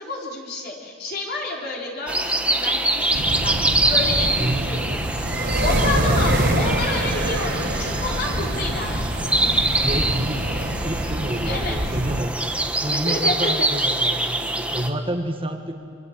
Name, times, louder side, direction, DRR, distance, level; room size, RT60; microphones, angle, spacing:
voice 1, 0.0-5.2 5.6-9.2 11.4-11.8 12.9-13.5, left 2 dB, 50° left, -2 dB, 4.2 m, -30 dB
sound 1, 2.1-14.9, right 2 dB, 5° right, 1.2 m, -25 dB
sound 2, 3.1-12.2, right 1 dB, 60° right, 3.4 m, -25 dB
voice 2, 6.0-6.5 9.7-12.3 12.8-15.7, right 1 dB, 25° right, 4 dB, 1.7 m, -29 dB
26.0 x 25.5 x 7.5 m, 2.3 s
head